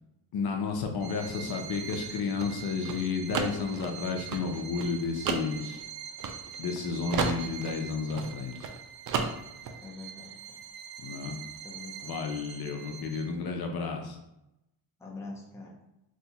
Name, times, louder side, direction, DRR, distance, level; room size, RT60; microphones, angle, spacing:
voice 1, 0.3-5.8 6.6-8.7 11.0-11.4 12.0-14.2, left 5 dB, 55° left, 3 dB, 0.6 m, -32 dB
Bowed string instrument, 1.0-13.5, right 9 dB, 90° right, 0.6 m, -44 dB
sound 1, 1.5-6.8 7.1-8.8 9.1-9.8, right 5 dB, 50° right, 0.4 m, -33 dB
voice 2, 9.8-10.6 11.6-12.1 15.0-15.8, left 3 dB, 5° left, -2 dB, 0.5 m, -44 dB
2.8 x 2.3 x 4.0 m, 0.88 s
cardioid pair, 110°, 44 cm